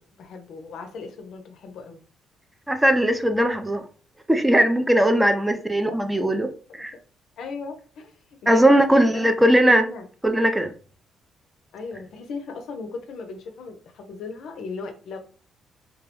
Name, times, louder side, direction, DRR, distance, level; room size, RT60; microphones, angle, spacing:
voice 1, 0.2-2.0 5.1-5.3 5.8-6.0 7.4-9.3 9.6-10.1 11.7-15.2, left 4 dB, 75° left, 0.5 m, -37 dB
voice 2, 2.7-3.8 4.3-6.9 8.5-9.9 10.2-10.7, right 1 dB, 10° right, 0.3 m, -19 dB
2.2 x 2.0 x 2.8 m
cardioid pair, 90°, 0 cm